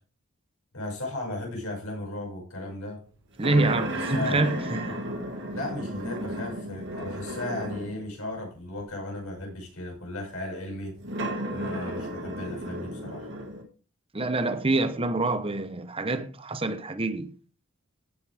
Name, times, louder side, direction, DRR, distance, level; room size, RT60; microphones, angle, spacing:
voice 1, 0.7-3.0 4.1-4.5 5.5-11.0 11.5-13.3, left 1 dB, 85° left, 5.9 m, -35 dB
voice 2, 3.4-5.1 14.1-17.3, right 2 dB, 25° right, 0.8 m, -26 dB
sound 1, 3.4-8.1 8.8-8.9 11.0-13.6, equal, 55° right, 1.9 m, -33 dB
15.5 x 6.6 x 3.5 m
head